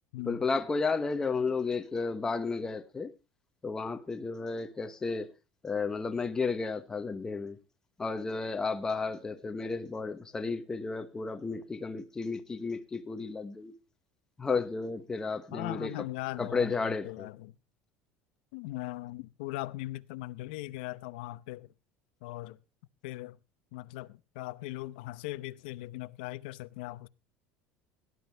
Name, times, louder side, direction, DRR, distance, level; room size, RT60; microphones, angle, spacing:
voice 1, 0.3-3.1 3.6-5.3 5.6-7.6 8.0-13.7 14.4-15.9 16.4-17.3, left 4 dB, 10° left, 1.0 m, -33 dB
voice 2, 15.5-17.6 18.5-21.7 22.2-22.6 23.0-23.4 23.7-27.1, left 18 dB, 90° left, 0.7 m, -39 dB
17.5 x 11.0 x 3.4 m
cardioid pair, 170°, 5 cm